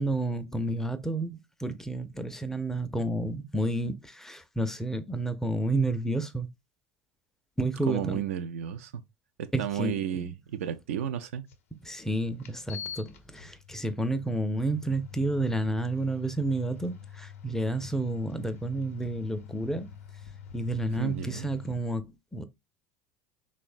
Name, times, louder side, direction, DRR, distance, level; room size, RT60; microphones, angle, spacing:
voice 1, 0.0-6.5 7.6-8.2 9.5-10.3 11.7-19.9 20.5-22.4, right 2 dB, 5° left, 0.4 m, -30 dB
voice 2, 7.9-9.0 9.4-11.4 21.0-21.5, right 10 dB, 75° right, 0.4 m, -33 dB
sound 1, 11.5-11.6 12.4-21.8, left 8 dB, 80° left, 0.5 m, -46 dB
3.0 x 2.1 x 2.5 m
hypercardioid pair, 80°, 7 cm